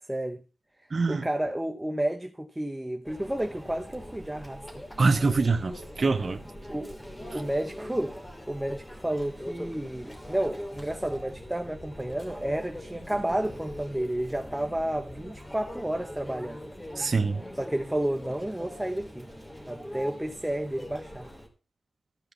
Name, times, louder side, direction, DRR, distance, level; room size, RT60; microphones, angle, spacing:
voice 1, 0.1-0.4 1.1-4.7 6.7-7.0 7.3-8.2 8.5-16.6 17.6-19.3 19.7-21.3, right 1 dB, 10° right, 1.0 m, -31 dB
voice 2, 0.9-1.2 5.0-6.4 17.0-17.4, right 4 dB, 50° right, 1.1 m, -24 dB
Conversation / Chatter / Crowd, 3.0-21.5, equal, 15° left, 3.0 m, -42 dB
13.5 x 5.0 x 8.1 m
wide cardioid pair, 85°, 0 cm